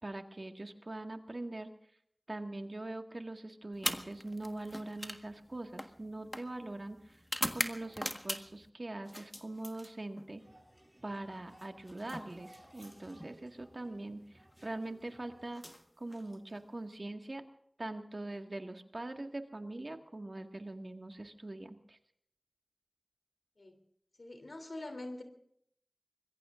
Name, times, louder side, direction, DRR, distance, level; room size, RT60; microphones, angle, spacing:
voice 1, 0.0-1.7 2.3-7.2 7.5-10.4 11.0-15.6 16.0-17.4 17.8-22.0, right 2 dB, 55° right, 4 dB, 1.8 m, -42 dB
sound 1, 3.7-8.7 9.1-10.3 11.5-13.3 14.4-14.7 15.5-16.6, equal, 15° left, 1.5 m, -41 dB
sound 2, 10.4-15.4, right 1 dB, 15° right, 7.6 m, -60 dB
voice 2, 24.2-25.2, left 2 dB, 85° left, 6 dB, 3.2 m, -44 dB
25.0 x 22.0 x 2.6 m, 0.69 s
wide cardioid pair, 50°, 0 cm